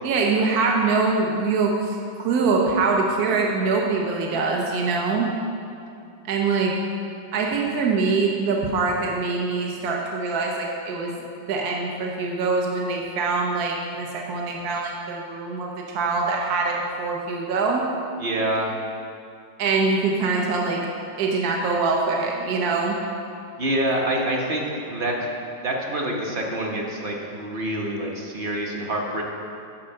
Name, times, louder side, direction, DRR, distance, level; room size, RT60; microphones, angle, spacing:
voice 1, 0.0-5.3 6.3-6.7 7.3-11.2 11.5-17.9 19.6-20.9 21.2-23.0, right 4 dB, 60° right, 0 dB, 1.4 m, -24 dB
voice 2, 18.2-18.7 23.6-25.1 25.6-29.2, right 1 dB, 35° right, 0 dB, 1.0 m, -26 dB
10.5 x 5.1 x 6.5 m, 2.5 s
omnidirectional pair, 2.0 m